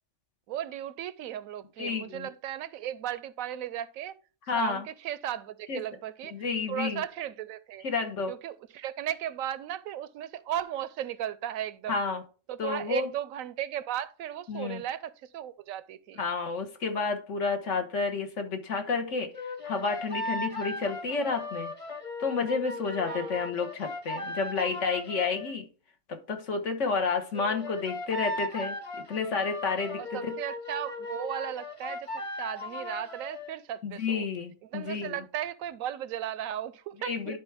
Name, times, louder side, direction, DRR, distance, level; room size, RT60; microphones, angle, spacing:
voice 1, 0.5-4.2 4.5-6.3 6.7-7.9 8.3-12.0 12.5-16.2 23.0-23.3 30.0-32.1 32.4-34.3 34.6-37.4, right 11 dB, 75° right, 1.0 m, -36 dB
voice 2, 1.8-2.3 4.5-4.8 5.7-5.8 6.3-7.0 7.8-8.3 11.9-12.2 12.6-13.1 14.5-14.8 16.2-19.3 19.6-21.7 22.2-25.6 26.1-28.8 29.1-30.3 33.8-35.2 37.0-37.4, left 4 dB, 60° left, 1.4 m, -30 dB
sound 1, 19.3-25.5 27.3-33.5, left 2 dB, 25° left, 1.2 m, -37 dB
11.0 x 4.6 x 3.4 m
omnidirectional pair, 1.4 m